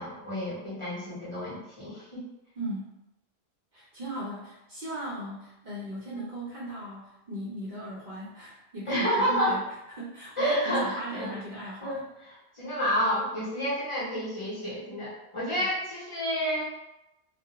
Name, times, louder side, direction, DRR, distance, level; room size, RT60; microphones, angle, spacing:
voice 1, 0.0-2.2 8.9-9.6 10.4-11.3 11.8-16.7, equal, 30° left, -9 dB, 0.8 m, -30 dB
voice 2, 2.6-2.9 3.7-9.6 9.9-12.1 15.6-15.7, right 1 dB, 55° right, -7 dB, 0.6 m, -37 dB
2.4 x 2.1 x 2.8 m, 0.91 s
omnidirectional pair, 1.1 m